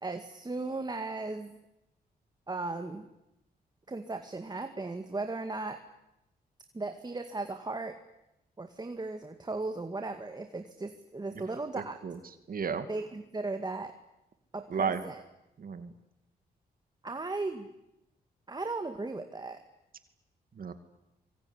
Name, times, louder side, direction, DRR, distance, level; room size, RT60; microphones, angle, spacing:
voice 1, 0.0-1.6 2.5-3.1 3.9-5.8 6.7-8.0 8.6-12.0 12.9-14.0 14.5-15.2 17.0-17.7 18.5-19.6, right 3 dB, 25° right, 7 dB, 2.2 m, -36 dB
voice 2, 11.7-12.2 12.5-12.9 14.7-15.0 15.6-15.9 20.6-20.7, right 6 dB, 55° right, 9 dB, 2.5 m, -33 dB
25.0 x 23.5 x 10.0 m, 0.91 s
cardioid pair, 75°, 17 cm